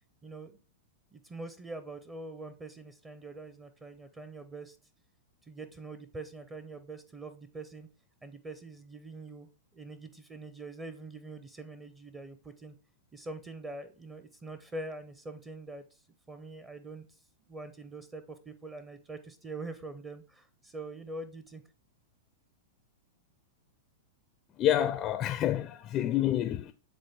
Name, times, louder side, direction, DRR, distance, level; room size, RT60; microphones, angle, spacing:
voice 1, 0.2-0.6 1.1-4.8 5.5-7.9 8.2-12.7 13.1-16.0 16.3-17.1 17.5-21.6, right 2 dB, 15° right, 0.6 m, -44 dB
voice 2, 24.6-26.7, left 11 dB, 35° left, 0.4 m, -28 dB
7.8 x 3.8 x 3.4 m
hypercardioid pair, 110°, 0 cm